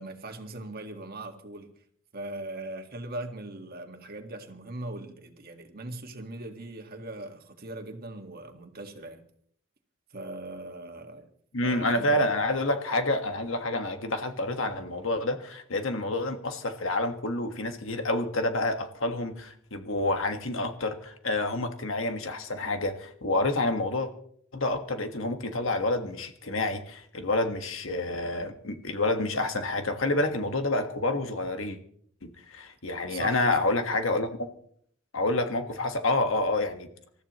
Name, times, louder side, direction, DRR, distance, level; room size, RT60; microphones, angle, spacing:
voice 1, 0.0-1.7 2.1-9.2 10.1-11.3 11.6-12.2 33.1-33.6, right 2 dB, 45° right, 1.8 m, -40 dB
voice 2, 11.5-24.1 24.5-31.8 32.2-34.5 35.1-36.9, left 2 dB, 65° left, 1.6 m, -28 dB
27.0 x 14.0 x 3.1 m
head